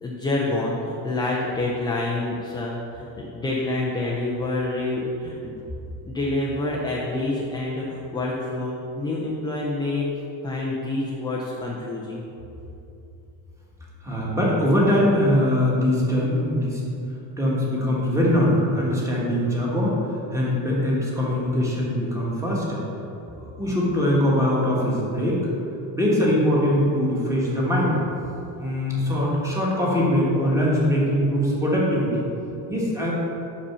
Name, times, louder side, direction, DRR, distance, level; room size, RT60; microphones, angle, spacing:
voice 1, 0.0-5.6 6.0-10.1 10.4-12.2, left 2 dB, 10° left, -4 dB, 0.3 m, -27 dB
voice 2, 14.0-16.8 17.4-22.8 23.3-25.4 25.9-28.0 28.6-32.3 32.7-33.1, equal, 5° right, -5 dB, 1.3 m, -22 dB
5.5 x 5.2 x 6.7 m, 2.8 s
cardioid pair, 170°, 44 cm